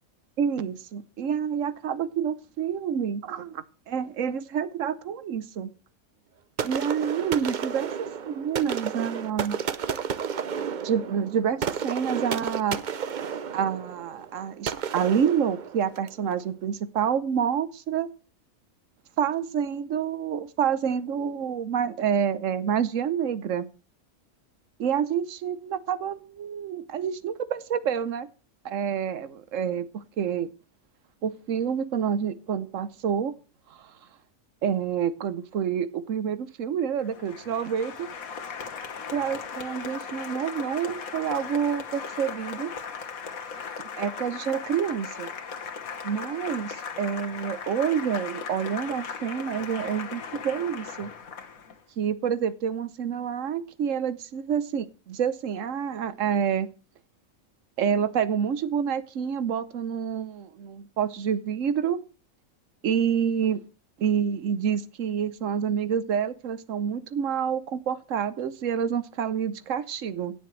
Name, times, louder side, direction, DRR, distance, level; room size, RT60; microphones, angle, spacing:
voice 1, 0.4-5.7 6.6-9.6 10.8-12.8 13.5-18.1 19.2-23.7 24.8-28.3 28.6-30.5 31.2-33.3 33.8-33.9 34.6-38.1 39.1-42.7 44.0-45.3 46.0-51.1 52.0-56.7 57.8-62.0 62.8-63.6 64.0-70.3, right 8 dB, 70° right, 1.2 m, -28 dB
sound 1, 6.6-16.2, right 7 dB, 45° right, 0.6 m, -32 dB
Applause, 37.0-51.8, left 6 dB, 90° left, 1.7 m, -37 dB
17.0 x 6.9 x 3.2 m
omnidirectional pair, 1.4 m